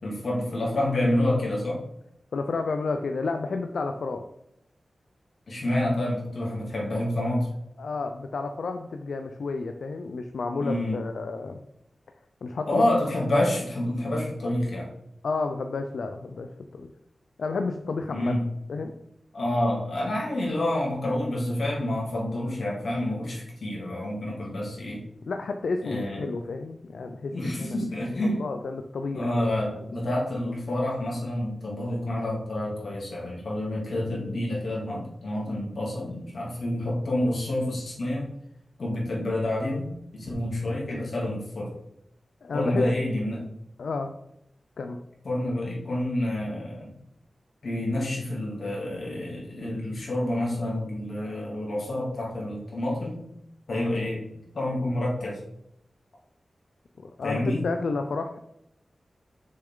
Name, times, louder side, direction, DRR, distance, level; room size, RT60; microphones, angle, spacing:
voice 1, 0.0-1.8 5.5-7.5 10.6-11.0 12.6-14.9 18.1-18.4 19.3-25.0 25.8-26.3 27.3-28.4 29.1-38.3 38.8-39.9 40.1-41.7 42.5-43.4 45.2-46.9 47.6-53.2 53.7-54.3 54.5-55.4 57.2-57.6, left 1 dB, 65° left, -4 dB, 2.8 m, -28 dB
voice 2, 2.3-4.2 7.8-11.6 12.4-12.8 15.2-16.9 17.4-18.3 18.7-18.9 25.3-27.8 28.2-29.5 42.4-42.8 43.8-44.1 44.8-45.0 57.0-58.4, left 4 dB, 85° left, 6 dB, 0.5 m, -31 dB
6.9 x 6.6 x 3.9 m, 0.79 s
wide cardioid pair, 110°, 0 cm